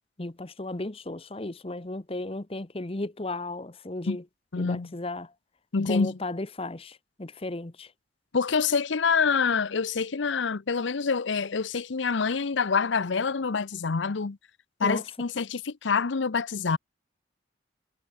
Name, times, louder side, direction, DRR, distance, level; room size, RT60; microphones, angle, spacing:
voice 1, 0.2-4.2 4.6-5.3 5.9-7.9 14.8-15.0, left 2 dB, 30° left, 1.0 m, -35 dB
voice 2, 4.5-4.9 5.7-6.2 8.3-14.4 14.8-16.8, left 5 dB, 90° left, 0.7 m, -26 dB
head